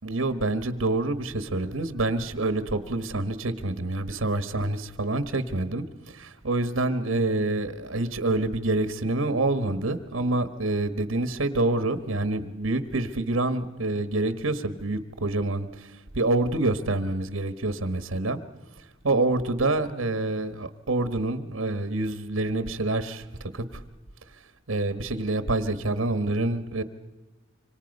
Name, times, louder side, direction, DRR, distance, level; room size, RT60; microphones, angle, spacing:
voice 1, 0.0-18.4 19.0-23.8 24.7-26.8, right 2 dB, 70° right, 11 dB, 1.3 m, -27 dB
26.5 x 25.0 x 5.4 m, 1.1 s
head